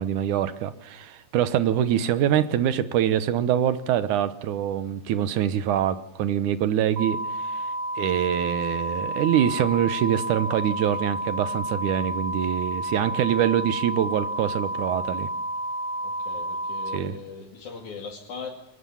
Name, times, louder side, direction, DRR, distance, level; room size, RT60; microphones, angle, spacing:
voice 1, 0.0-7.7 8.0-15.3 16.9-17.1, right 10 dB, 90° right, 12 dB, 2.5 m, -24 dB
sound 1, 7.0-17.0, right 1 dB, 65° right, 2.3 m, -30 dB
voice 2, 16.0-18.5, left 5 dB, 80° left, -1 dB, 3.8 m, -39 dB
23.0 x 19.5 x 7.1 m, 0.90 s
omnidirectional pair, 3.4 m